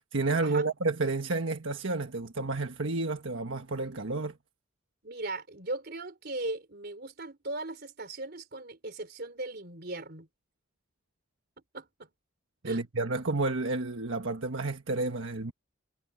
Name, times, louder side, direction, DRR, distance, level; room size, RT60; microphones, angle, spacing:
voice 1, 0.1-4.4 12.6-15.5, right 3 dB, 80° right, 1.4 m, -30 dB
voice 2, 5.0-10.3 11.7-12.1 12.7-12.8, right 2 dB, 55° right, 3.9 m, -38 dB
head